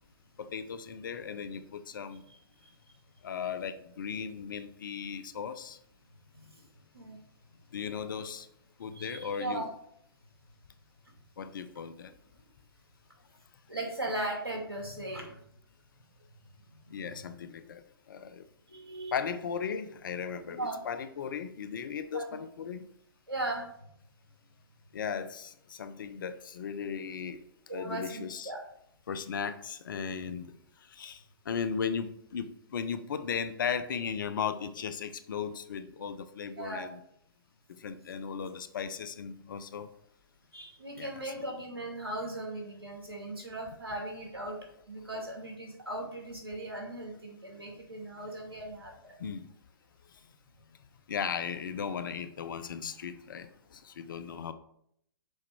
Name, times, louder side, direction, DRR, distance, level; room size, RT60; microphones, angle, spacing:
voice 1, 0.4-2.2 3.2-5.8 7.7-8.5 8.8-9.7 11.4-12.1 16.9-17.8 18.1-18.4 19.1-22.8 24.9-27.4 27.7-28.5 29.1-30.4 30.9-31.2 31.5-37.0 37.8-39.9 41.0-41.1 49.2-49.5 51.1-54.5, left 7 dB, 60° left, 12 dB, 0.7 m, -36 dB
voice 2, 2.3-2.7 6.3-6.6 6.9-7.2 8.9-9.7 13.7-15.3 16.9-17.1 18.7-19.1 20.5-20.8 22.1-22.3 23.3-23.7 27.7-28.6 36.6-36.9 40.5-44.6 44.9-49.2, right 2 dB, 90° right, 0 dB, 2.3 m, -38 dB
6.5 x 4.2 x 4.7 m, 0.70 s
figure-of-eight pair, 120°, 12 cm